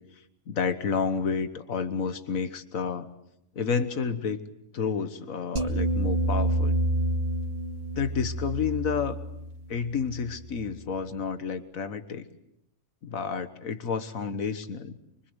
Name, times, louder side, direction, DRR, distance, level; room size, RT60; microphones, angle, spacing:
voice 1, 0.1-3.1 3.6-4.4 4.7-6.8 7.9-9.2 9.7-12.3 13.0-15.0, left 6 dB, 85° left, 10 dB, 1.8 m, -30 dB
sound 1, 5.6-10.8, right 1 dB, 35° right, 2.2 m, -29 dB
25.0 x 24.5 x 8.1 m, 0.78 s
omnidirectional pair, 1.4 m